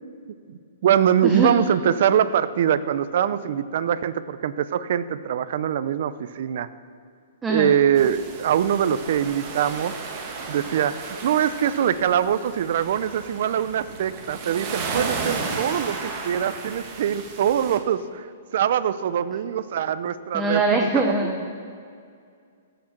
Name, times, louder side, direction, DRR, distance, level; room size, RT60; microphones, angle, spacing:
voice 1, 0.5-6.7 7.5-9.9 10.5-18.3 18.5-21.1, right 9 dB, 60° right, 15 dB, 0.5 m, -23 dB
voice 2, 7.4-7.7 20.3-21.5, right 2 dB, 10° right, 2 dB, 0.8 m, -22 dB
sound 1, 8.0-17.8, right 4 dB, 35° right, 1.6 m, -34 dB
15.0 x 6.0 x 6.6 m, 2.3 s
hypercardioid pair, 150°, 0 cm